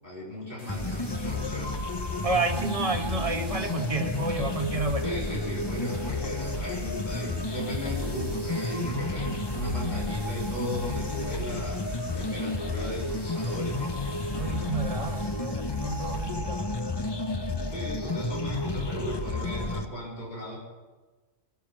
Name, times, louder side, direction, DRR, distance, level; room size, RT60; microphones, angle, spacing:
voice 1, 0.0-1.8 5.0-14.0 17.7-20.6, equal, 40° left, -5 dB, 4.1 m, -36 dB
sound 1, 0.6-18.9, equal, 80° left, 5.2 m, -49 dB
sound 2, 0.7-19.8, left 2 dB, 25° left, 0.8 m, -31 dB
voice 2, 2.2-5.1 14.4-16.7, right 3 dB, 30° right, 4 dB, 1.5 m, -30 dB
21.0 x 7.2 x 7.4 m, 1.3 s
omnidirectional pair, 1.1 m